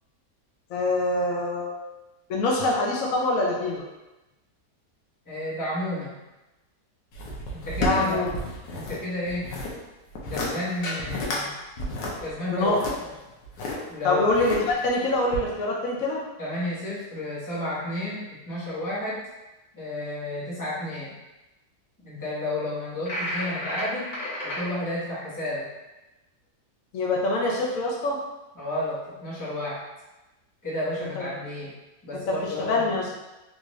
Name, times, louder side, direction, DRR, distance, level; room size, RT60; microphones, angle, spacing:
voice 1, 0.7-1.8 2.3-3.8 7.7-8.3 12.5-12.8 14.0-16.2 26.9-28.2 31.2-31.3 32.3-33.1, left 2 dB, 65° left, -2 dB, 0.9 m, -25 dB
voice 2, 5.2-6.2 7.5-8.2 8.7-9.5 10.3-11.5 12.2-12.7 13.0-13.1 13.9-14.2 16.4-19.2 19.7-21.1 22.0-24.1 24.4-25.7 28.5-29.8 30.6-31.7 32.0-32.8, left 1 dB, 15° left, -9 dB, 0.9 m, -31 dB
sound 1, 7.1-9.0 9.3-9.7 10.1-10.5 10.8-11.4 11.8-13.8 14.3-14.9 15.3-15.4, left 1 dB, 90° left, 1.4 m, -31 dB
sound 2, 23.1-24.6, left 1 dB, 45° left, 1.5 m, -31 dB
3.6 x 2.5 x 3.1 m, 1.0 s
omnidirectional pair, 1.9 m